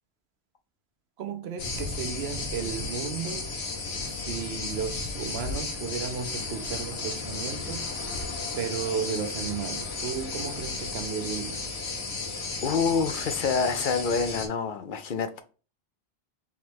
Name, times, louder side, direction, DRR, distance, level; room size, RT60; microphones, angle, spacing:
voice 1, 1.2-3.5 4.0-7.9 8.6-11.7, right 7 dB, 80° right, 0.9 m, -34 dB
sound 1, 1.6-14.5, left 3 dB, 85° left, 1.2 m, -34 dB
voice 2, 12.6-15.4, left 5 dB, 60° left, 0.7 m, -27 dB
3.6 x 3.1 x 4.5 m
omnidirectional pair, 1.1 m